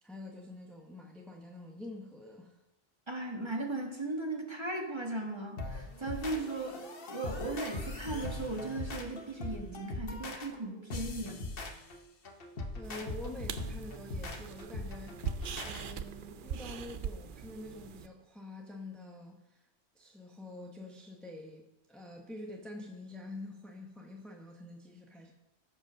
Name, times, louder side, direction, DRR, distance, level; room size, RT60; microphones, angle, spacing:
voice 1, 0.0-2.6 12.7-19.7 19.9-25.3, left 1 dB, ahead, 1 dB, 1.0 m, -47 dB
voice 2, 3.1-6.8 7.1-11.4, right 2 dB, 25° right, 2 dB, 1.6 m, -37 dB
sound 1, 5.6-15.8, left 2 dB, 55° left, 1.3 m, -41 dB
sound 2, 12.8-18.1, right 7 dB, 55° right, 0.7 m, -42 dB
15.0 x 5.3 x 6.3 m, 0.97 s
omnidirectional pair, 1.1 m